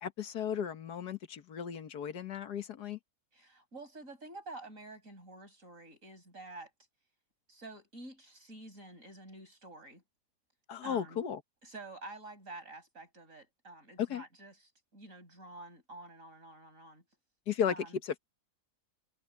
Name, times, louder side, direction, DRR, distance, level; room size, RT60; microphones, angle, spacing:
voice 1, 0.0-3.0 10.7-11.4 14.0-14.2 17.5-17.8 18.0-18.2, left 8 dB, 75° left, 1.7 m, -35 dB
voice 2, 3.3-6.7 7.5-10.0 10.8-11.2 11.6-17.0 17.7-18.0, right 2 dB, 50° right, 7.1 m, -49 dB
omnidirectional pair, 1.7 m